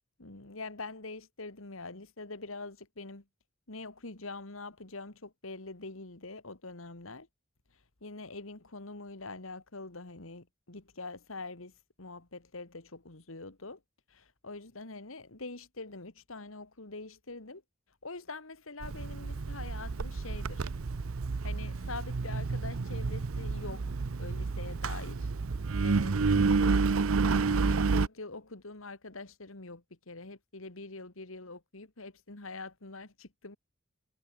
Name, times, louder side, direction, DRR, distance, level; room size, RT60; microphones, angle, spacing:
voice 1, 0.2-3.2 3.7-7.3 8.0-11.7 12.0-13.8 14.1-17.6 18.0-20.7 21.4-23.8 24.2-25.3 25.8-26.9 27.5-33.6, left 3 dB, 75° left, 2.3 m, -44 dB
Engine, 18.8-28.1, right 4 dB, 80° right, 0.7 m, -30 dB
head